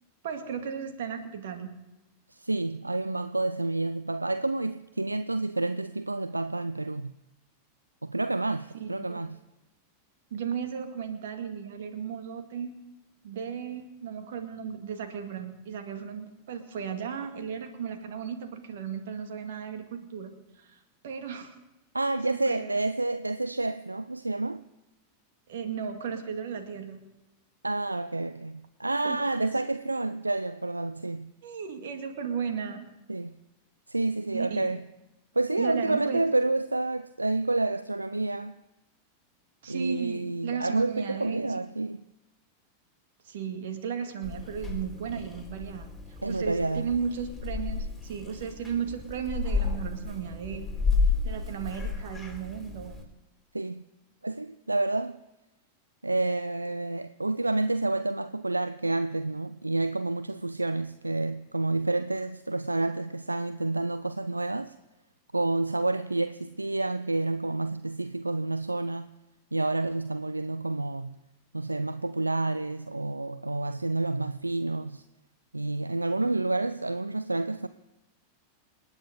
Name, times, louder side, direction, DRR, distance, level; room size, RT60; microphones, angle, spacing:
voice 1, 0.2-1.8 8.7-9.2 10.3-12.8 13.2-20.3 20.6-21.5 22.3-22.7 25.5-27.1 29.0-29.5 31.4-32.9 34.3-34.7 35.6-36.3 39.6-41.6 43.2-45.9 46.3-50.7 51.2-53.0, right 7 dB, 55° right, 2.0 m, -35 dB
voice 2, 2.3-7.1 8.0-9.4 21.9-24.6 27.6-31.3 33.1-33.3 33.9-34.8 35.3-38.6 39.7-42.0 46.2-46.9 53.5-53.8 54.2-55.2 56.0-64.8 65.3-69.1 69.5-71.2 71.5-75.0 75.5-77.7, right 2 dB, 85° right, 0.4 m, -29 dB
Purr / Meow, 44.2-53.0, left 4 dB, ahead, 4.2 m, -32 dB
28.0 x 9.3 x 5.2 m
figure-of-eight pair, 90°, 0 cm